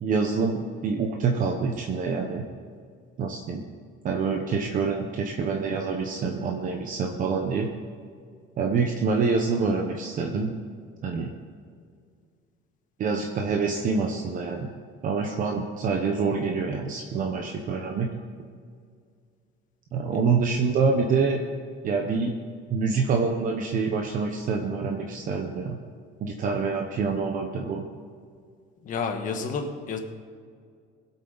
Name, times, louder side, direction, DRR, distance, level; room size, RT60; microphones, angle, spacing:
voice 1, 0.0-2.4 3.2-3.6 4.0-7.7 8.6-10.5 11.0-11.3 13.0-14.7 15.0-18.1 19.9-21.4 21.8-22.3 22.7-25.8 26.2-27.8, right 4 dB, 40° right, 2 dB, 1.0 m, -26 dB
voice 2, 28.8-30.0, left 5 dB, 40° left, 4 dB, 1.5 m, -30 dB
22.0 x 8.3 x 4.1 m, 2.1 s
cardioid pair, 180°, 21 cm